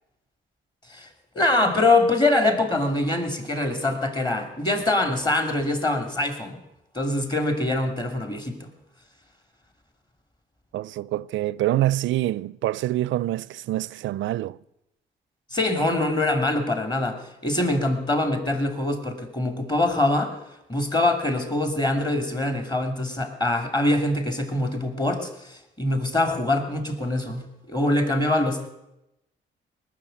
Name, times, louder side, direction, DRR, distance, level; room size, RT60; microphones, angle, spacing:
voice 1, 1.3-6.6 6.9-8.7 15.5-20.3 20.7-28.7, left 2 dB, 20° left, 2.9 m, -24 dB
voice 2, 10.7-14.6, right 15 dB, 75° right, 0.5 m, -26 dB
19.5 x 6.8 x 9.1 m
cardioid pair, 90°, 20 cm